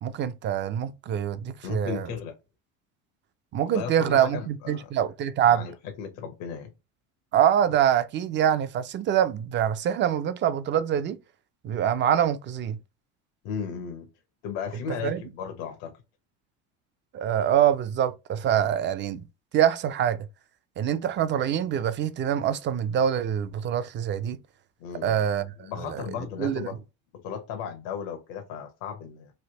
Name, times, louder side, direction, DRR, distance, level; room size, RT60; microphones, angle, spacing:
voice 1, 0.0-2.1 3.5-5.6 7.3-11.2 11.6-12.8 15.0-15.2 17.1-19.2 19.5-20.3 20.8-24.4 25.0-26.0 26.4-26.7, right 10 dB, 35° right, 0.4 m, -25 dB
voice 2, 1.6-2.3 3.5-4.9 5.5-6.7 13.4-14.1 14.4-16.0 24.8-25.2 25.6-26.8 27.1-29.3, left 7 dB, 80° left, 0.9 m, -35 dB
3.3 x 2.7 x 2.8 m
supercardioid pair, 115°, 35 cm